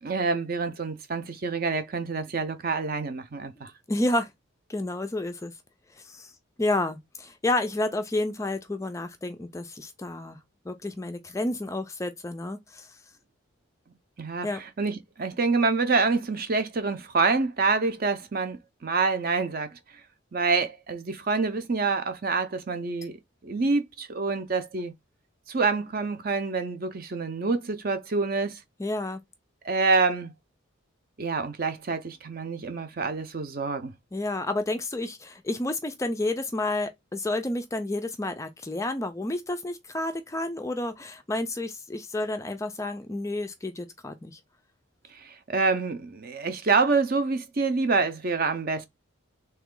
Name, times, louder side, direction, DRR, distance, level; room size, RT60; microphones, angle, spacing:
voice 1, 0.0-3.7 14.2-19.8 20.3-23.1 23.4-24.9 25.5-28.6 29.6-30.3 31.2-33.9 45.2-48.9, right 4 dB, 45° right, 0.6 m, -27 dB
voice 2, 3.6-4.3 4.7-5.5 6.0-6.3 6.6-10.4 10.7-13.0 14.4-14.6 28.8-29.2 34.1-44.4, left 2 dB, 15° left, 0.3 m, -30 dB
3.3 x 3.0 x 3.6 m
head